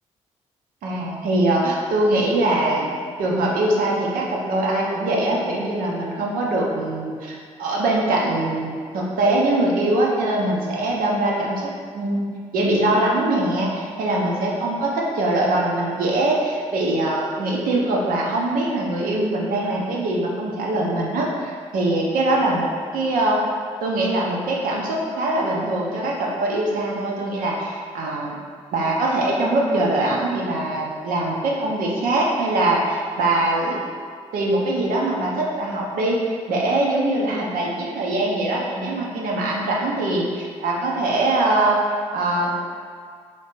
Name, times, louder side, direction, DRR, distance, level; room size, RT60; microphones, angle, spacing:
voice 1, 0.8-2.9 3.2-12.3 12.5-23.4 23.8-28.4 28.7-33.9 34.3-41.8 42.1-42.5, right 2 dB, 70° right, -3 dB, 0.8 m, -22 dB
4.4 x 3.2 x 3.1 m, 2.1 s
hypercardioid pair, 50°, 15 cm